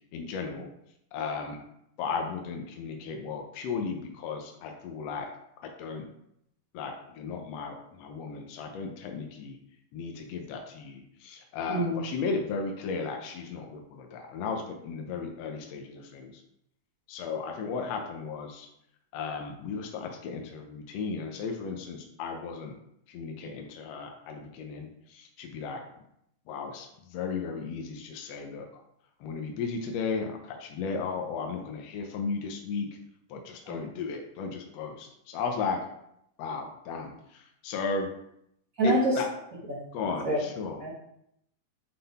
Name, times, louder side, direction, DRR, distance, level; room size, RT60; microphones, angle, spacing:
voice 1, 0.1-0.7 1.1-1.6 2.0-5.3 5.6-6.0 6.7-9.6 9.9-16.4 17.1-18.7 19.1-22.7 23.1-25.8 26.5-28.6 29.2-32.9 33.3-35.8 36.4-38.1 38.8-39.3 39.9-40.8, left 4 dB, 75° left, 3 dB, 1.7 m, -35 dB
voice 2, 11.7-12.0 33.7-33.8 38.8-39.1 39.7-39.8 40.2-40.4 40.8-40.9, equal, 70° right, -5 dB, 0.8 m, -26 dB
7.8 x 3.7 x 4.1 m, 0.76 s
omnidirectional pair, 3.4 m